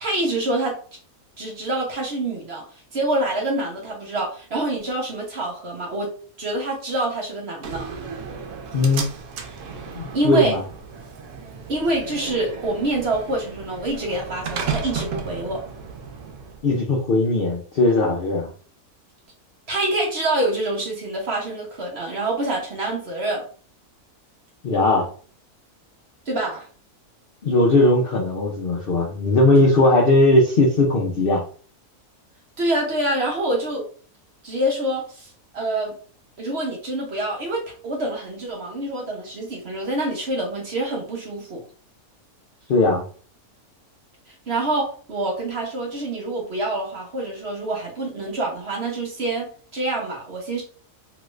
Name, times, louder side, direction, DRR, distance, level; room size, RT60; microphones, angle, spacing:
voice 1, 0.0-0.8 1.4-2.6 2.9-6.1 6.4-7.9 10.1-10.5 11.7-15.6 19.7-23.4 26.3-26.7 32.6-33.8 34.4-35.9 36.4-41.6 44.5-50.6, right 1 dB, 50° right, -1 dB, 0.9 m, -26 dB
Slam, 7.6-16.6, right 5 dB, 90° right, 1.1 m, -34 dB
voice 2, 8.7-9.1 9.9-10.6 16.6-18.5 24.6-25.1 27.4-31.4 42.7-43.0, left 2 dB, 60° left, -1 dB, 0.6 m, -18 dB
3.0 x 2.4 x 3.1 m, 0.43 s
omnidirectional pair, 1.6 m